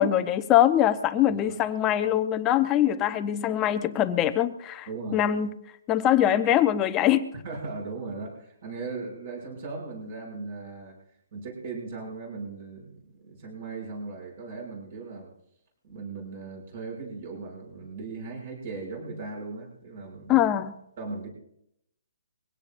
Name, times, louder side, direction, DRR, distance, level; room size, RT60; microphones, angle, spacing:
voice 1, 0.0-4.9 5.1-5.5 5.9-7.3 20.3-20.7, left 11 dB, 15° left, 10 dB, 0.7 m, -23 dB
voice 2, 1.3-1.6 4.9-5.2 7.3-11.0 11.3-15.3 15.8-20.4 21.0-21.3, right 3 dB, 35° right, 0 dB, 6.8 m, -38 dB
23.0 x 17.0 x 2.6 m, 0.74 s
hypercardioid pair, 170°, 0 cm